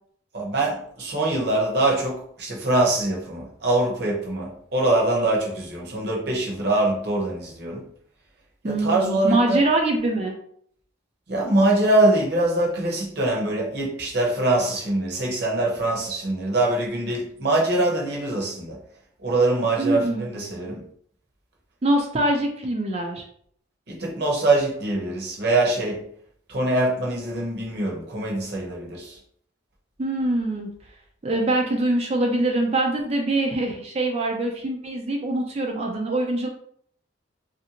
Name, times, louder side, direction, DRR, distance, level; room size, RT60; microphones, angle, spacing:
voice 1, 0.3-7.8 8.6-9.6 11.3-18.8 19.2-20.8 23.9-26.0 26.5-29.2, right 2 dB, 55° right, -2 dB, 0.9 m, -23 dB
voice 2, 8.6-10.3 19.8-20.3 21.8-23.2 30.0-30.7 31.2-36.5, right 2 dB, 30° right, 1 dB, 0.4 m, -24 dB
3.2 x 2.6 x 2.8 m, 0.64 s
head